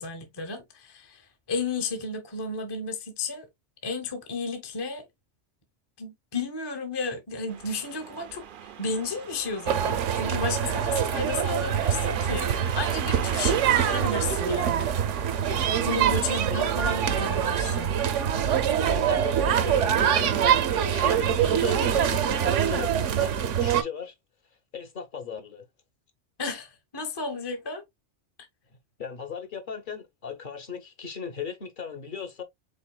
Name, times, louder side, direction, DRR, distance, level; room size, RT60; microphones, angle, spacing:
voice 1, 0.0-3.5 3.8-5.1 6.0-8.4 8.8-14.9 15.8-18.0 26.4-27.8, left 3 dB, 25° left, 0.8 m, -33 dB
sound 1, 7.5-23.2, right 8 dB, 55° right, 0.6 m, -41 dB
sound 2, 9.7-23.8, right 8 dB, 75° right, 1.0 m, -24 dB
voice 2, 16.2-16.7 18.7-24.1 24.7-25.6 29.0-32.4, left 7 dB, 45° left, 1.1 m, -37 dB
5.4 x 4.0 x 2.2 m
omnidirectional pair, 1.3 m